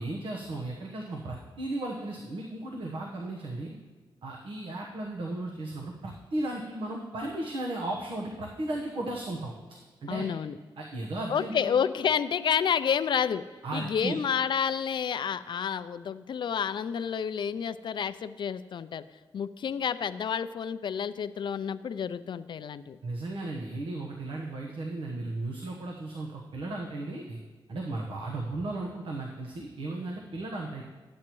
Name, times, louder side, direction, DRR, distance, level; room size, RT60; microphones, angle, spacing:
voice 1, 0.0-3.7 4.2-10.3 10.8-11.7 13.6-14.2 23.0-27.4 27.7-30.8, right 2 dB, 80° right, -1 dB, 1.1 m, -35 dB
voice 2, 10.1-10.6 11.3-13.4 13.7-19.0 19.3-23.0, left 7 dB, 65° left, 13 dB, 0.4 m, -29 dB
12.0 x 8.5 x 3.1 m, 1.3 s
cardioid pair, 90°, 9 cm